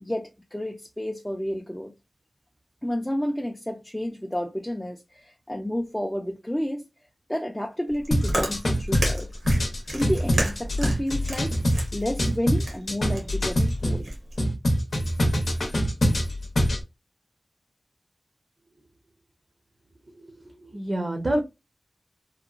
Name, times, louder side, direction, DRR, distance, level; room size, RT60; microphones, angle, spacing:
voice 1, 0.0-1.9 2.8-6.9 7.3-9.3 9.9-11.6 11.9-14.1, equal, 10° left, 0.4 m, -30 dB
Chewing mastication, 7.9-14.4, right 1 dB, 80° right, 1.1 m, -32 dB
sound 1, 8.1-14.0 14.4-16.8, equal, 85° left, 0.7 m, -24 dB
voice 2, 20.1-21.4, right 1 dB, 50° right, 0.7 m, -28 dB
2.9 x 2.1 x 2.4 m
wide cardioid pair, 70°, 0 cm